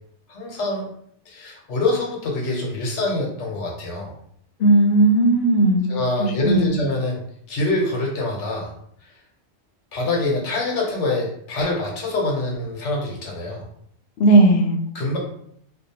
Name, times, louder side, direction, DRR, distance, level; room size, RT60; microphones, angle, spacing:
voice 1, 0.3-0.9 1.3-4.1 5.9-7.2 7.5-8.7 9.9-13.6 14.9-15.2, left 2 dB, 85° left, -1 dB, 1.1 m, -25 dB
voice 2, 4.6-5.9 6.2-6.7 14.2-14.8, right 2 dB, 65° left, 2 dB, 0.7 m, -16 dB
2.7 x 2.1 x 2.8 m, 0.66 s
omnidirectional pair, 1.2 m